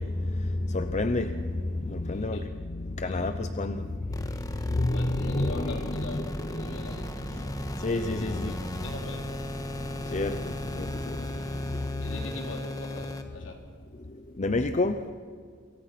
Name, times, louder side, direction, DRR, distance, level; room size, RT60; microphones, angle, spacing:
voice 1, 0.0-7.0 7.3-8.5 9.8-12.1 14.0-15.1, left 2 dB, 35° left, 9 dB, 0.7 m, -30 dB
voice 2, 2.1-2.5 3.0-3.5 4.9-9.6 11.2-11.6 12.0-13.6, left 2 dB, 65° left, 2 dB, 3.9 m, -43 dB
sound 1, 4.1-13.2, left 1 dB, 20° left, 1.7 m, -36 dB
28.0 x 23.5 x 6.0 m, 2.1 s
head